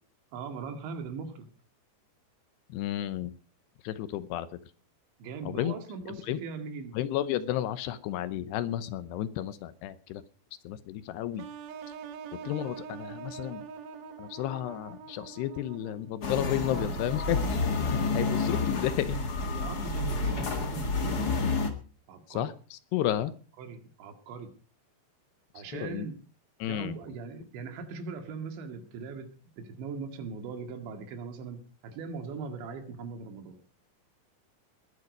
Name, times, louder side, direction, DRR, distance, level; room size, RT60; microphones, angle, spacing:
voice 1, 0.3-1.5 5.2-7.0 19.5-21.4 22.1-22.5 23.6-24.5 25.5-26.2 26.6-29.3 29.6-31.6 31.8-33.6, right 5 dB, 80° right, 7 dB, 4.3 m, -40 dB
voice 2, 2.7-3.3 3.8-4.5 5.5-5.7 6.1-6.4 6.9-10.2 10.6-11.5 12.3-13.6 14.2-17.6 18.1-19.2 22.3-23.3 25.7-26.1 26.6-27.0, left 12 dB, 75° left, 14 dB, 2.7 m, -32 dB
sound 1, 11.4-16.2, right 7 dB, 65° right, 2.9 m, -44 dB
sound 2, 16.2-21.7, left 3 dB, 60° left, 1.0 m, -29 dB
20.5 x 9.7 x 5.3 m, 0.39 s
omnidirectional pair, 5.1 m